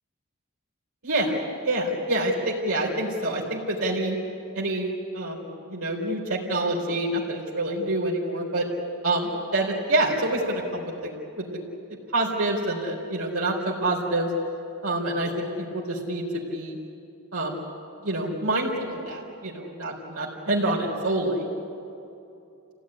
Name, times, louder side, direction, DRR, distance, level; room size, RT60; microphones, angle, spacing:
voice 1, 1.0-1.4 1.6-4.2 4.5-8.7 9.0-11.6 12.1-14.3 14.8-16.8 17.3-17.6 18.0-21.4, right 1 dB, 70° right, -3 dB, 4.0 m, -27 dB
28.5 x 17.5 x 9.9 m, 2.7 s
head